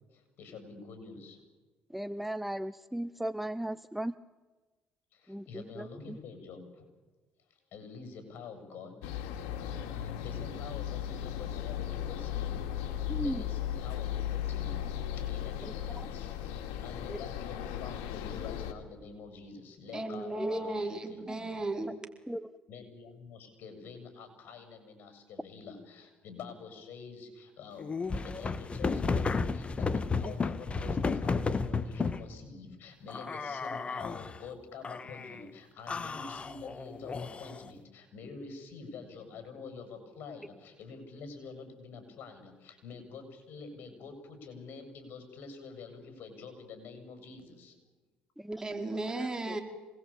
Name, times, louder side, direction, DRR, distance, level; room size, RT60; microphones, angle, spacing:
voice 1, 0.1-1.4 5.1-6.9 7.7-9.0 9.9-14.8 15.3-16.3 16.8-21.6 22.7-47.7, left 5 dB, 65° left, 7 dB, 7.6 m, -47 dB
voice 2, 1.9-4.1 5.3-6.2 13.1-13.4 17.1-17.2 20.4-20.7 22.3-22.4 48.4-48.6, right 1 dB, 5° right, 14 dB, 0.8 m, -36 dB
sound 1, 9.0-18.7, left 10 dB, 90° left, 2.4 m, -36 dB
voice 3, 19.9-22.0 48.6-49.6, right 2 dB, 20° right, 4 dB, 4.6 m, -35 dB
sound 2, 27.8-32.3 33.1-34.4 34.8-35.4 35.9-37.7, left 4 dB, 35° left, 1.5 m, -33 dB
27.0 x 20.5 x 8.9 m, 1.2 s
supercardioid pair, 70°, 4 cm